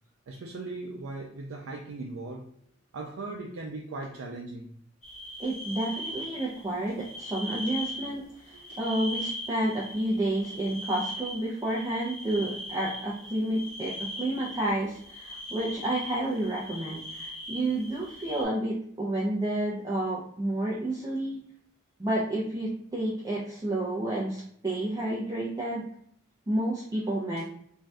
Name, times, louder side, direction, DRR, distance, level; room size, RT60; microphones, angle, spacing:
voice 1, 0.3-2.5 2.9-4.7 8.5-8.8 27.4-27.5, right 2 dB, 75° right, -1 dB, 0.4 m, -39 dB
sound 1, 5.0-6.7 7.0-8.1 8.4-18.4, left 1 dB, 35° left, 1.0 m, -39 dB
voice 2, 5.4-21.4 22.0-25.9 26.5-27.4, right 1 dB, 15° right, -6 dB, 0.4 m, -30 dB
2.6 x 2.2 x 3.2 m, 0.64 s
head